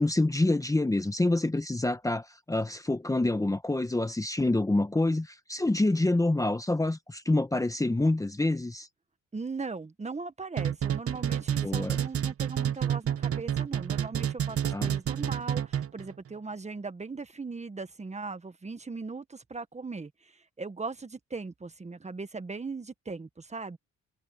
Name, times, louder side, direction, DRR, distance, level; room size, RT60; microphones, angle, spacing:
voice 1, 0.0-8.9 11.6-12.0 14.7-14.9, left 2 dB, 10° left, 1.1 m, -27 dB
voice 2, 9.3-23.8, right 4 dB, 20° right, 1.5 m, -39 dB
sound 1, 10.6-16.1, right 9 dB, 50° right, 1.0 m, -29 dB
cardioid pair, 90°, 30 cm